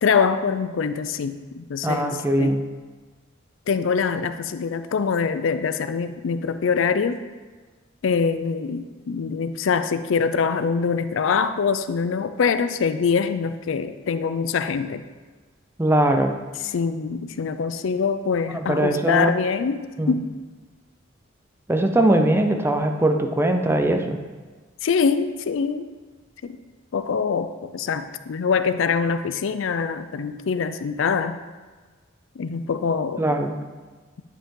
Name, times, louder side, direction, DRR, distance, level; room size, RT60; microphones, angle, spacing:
voice 1, 0.0-2.1 2.4-2.6 3.7-7.2 8.0-15.0 16.7-20.3 24.8-25.9 26.4-26.6 26.9-31.4 32.4-33.2, left 5 dB, 75° left, 11 dB, 0.4 m, -24 dB
voice 2, 1.8-2.6 15.8-16.4 18.5-19.3 20.0-20.2 21.7-24.2 33.2-33.6, right 1 dB, 10° right, 5 dB, 0.5 m, -21 dB
9.8 x 5.6 x 3.7 m, 1.4 s
head